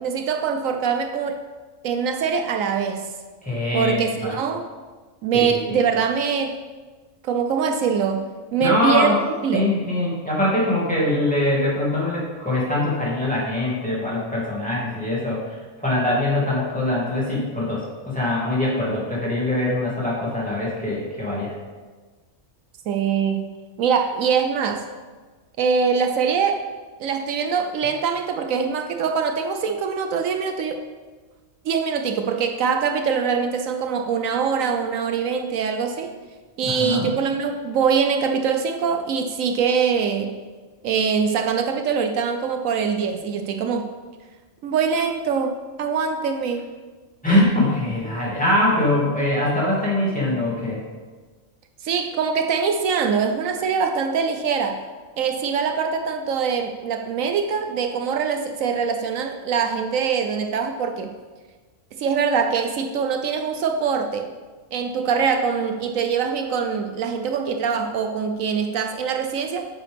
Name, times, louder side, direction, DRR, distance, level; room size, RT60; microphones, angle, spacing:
voice 1, 0.0-1.4 1.8-3.1 3.7-4.7 5.2-6.6 7.2-9.2 9.4-9.8 22.9-23.5 23.8-24.8 25.6-26.6 27.0-30.8 31.6-36.1 36.6-40.4 40.8-43.9 44.6-46.8 51.8-54.8 55.2-61.1 62.0-64.3 64.7-69.7, right 6 dB, 80° right, 5 dB, 1.1 m, -23 dB
voice 2, 3.4-4.4 5.3-5.8 8.6-9.2 9.5-15.4 15.8-21.5 36.6-37.1 47.2-50.8, left 1 dB, 5° left, -7 dB, 2.5 m, -23 dB
9.9 x 7.5 x 3.5 m, 1.3 s
omnidirectional pair, 1.4 m